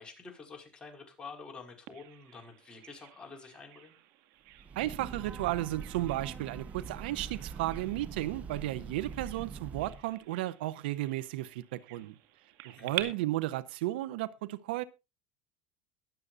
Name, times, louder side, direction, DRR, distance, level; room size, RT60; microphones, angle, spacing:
voice 1, 0.0-4.0 12.8-13.2, left 4 dB, 20° left, 5.2 m, -48 dB
Bird vocalization bird call bird song, 1.9-13.0, right 17 dB, 70° right, 2.1 m, -47 dB
Breathing / Train, 4.5-10.1, right 5 dB, 25° right, 1.2 m, -43 dB
voice 2, 4.8-12.1 12.6-14.8, right 16 dB, 90° right, 0.8 m, -34 dB
22.5 x 7.9 x 2.6 m
supercardioid pair, 125°, 5 cm